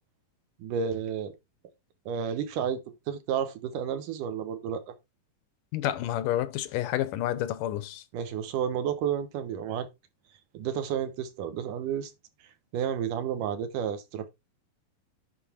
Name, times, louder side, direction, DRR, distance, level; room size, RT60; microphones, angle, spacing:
voice 1, 0.6-1.3 2.1-2.8 3.1-4.9 8.1-9.9 10.5-12.1 12.7-14.3, right 8 dB, 80° right, 2.7 m, -31 dB
voice 2, 5.7-8.0, left 13 dB, 85° left, 2.4 m, -29 dB
10.5 x 4.2 x 4.4 m
omnidirectional pair, 3.8 m